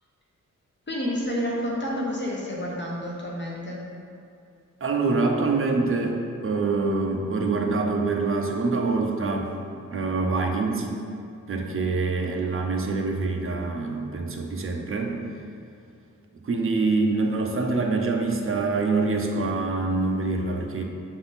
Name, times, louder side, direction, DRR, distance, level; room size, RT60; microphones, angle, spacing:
voice 1, 0.9-3.9, equal, 35° left, -4 dB, 1.0 m, -29 dB
voice 2, 4.8-9.5 9.9-10.9 11.5-15.2 16.4-20.8, right 3 dB, 45° right, 1 dB, 0.7 m, -25 dB
6.8 x 3.9 x 4.0 m, 2.5 s
wide cardioid pair, 150°, 31 cm